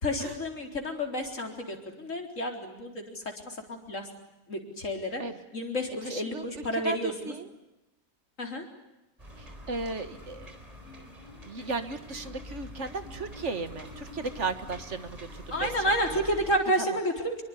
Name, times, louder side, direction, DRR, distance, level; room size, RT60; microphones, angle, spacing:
voice 1, 0.0-4.1 4.5-5.2 5.5-7.3 8.4-8.6 15.5-17.4, equal, 50° left, 3 dB, 4.5 m, -30 dB
voice 2, 6.0-7.5 9.4-10.6 11.4-16.2 16.9-17.0, right 4 dB, 50° right, 10 dB, 1.8 m, -36 dB
sound 1, 9.2-16.6, equal, 20° right, 4.0 m, -45 dB
26.0 x 23.0 x 9.8 m, 0.98 s
omnidirectional pair, 1.7 m